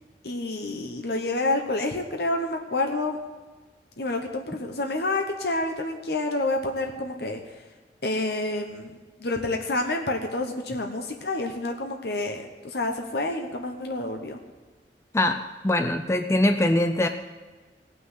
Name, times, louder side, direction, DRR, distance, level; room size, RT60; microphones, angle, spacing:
voice 1, 0.2-3.2 4.0-7.4 8.0-14.4, left 2 dB, 65° left, 3 dB, 1.1 m, -28 dB
voice 2, 15.1-17.1, left 1 dB, 15° left, 6 dB, 0.5 m, -23 dB
17.5 x 6.2 x 8.1 m, 1.3 s
head